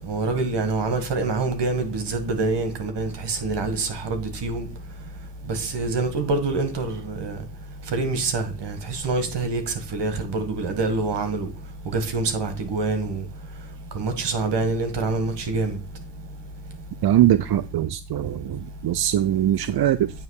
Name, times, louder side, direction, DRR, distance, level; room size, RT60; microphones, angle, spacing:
voice 1, 0.1-4.7 5.5-7.4 7.9-11.5 11.8-13.3 13.9-15.8, right 3 dB, 80° right, 1.7 m, -26 dB
voice 2, 17.0-20.1, right 12 dB, 65° right, 0.5 m, -21 dB
9.0 x 3.2 x 6.4 m
cardioid pair, 50°, 41 cm